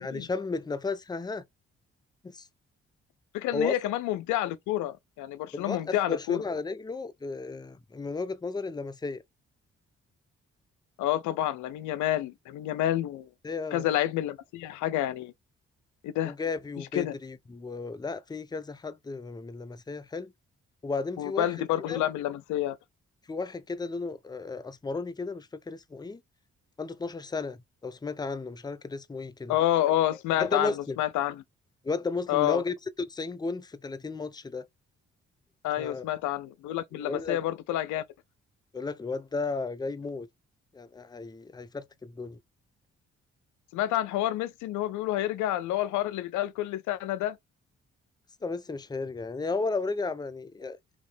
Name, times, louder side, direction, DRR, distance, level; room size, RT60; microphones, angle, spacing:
voice 1, 0.0-1.4 2.3-2.5 3.5-3.7 5.5-9.2 13.4-13.9 16.2-20.3 20.8-21.5 21.9-22.0 23.3-26.2 26.8-27.6 27.8-29.6 30.4-31.0 31.8-32.7 33.1-34.7 35.8-36.0 36.9-37.4 38.7-40.3 40.7-42.4 48.4-50.8, left 4 dB, 15° left, 0.5 m, -34 dB
voice 2, 3.3-6.4 11.0-13.3 13.7-15.3 16.0-16.3 16.8-17.1 21.2-22.8 29.5-31.4 32.3-32.6 35.6-38.0 43.7-47.4, left 13 dB, 80° left, 0.5 m, -29 dB
3.2 x 2.8 x 3.3 m
supercardioid pair, 45°, 30 cm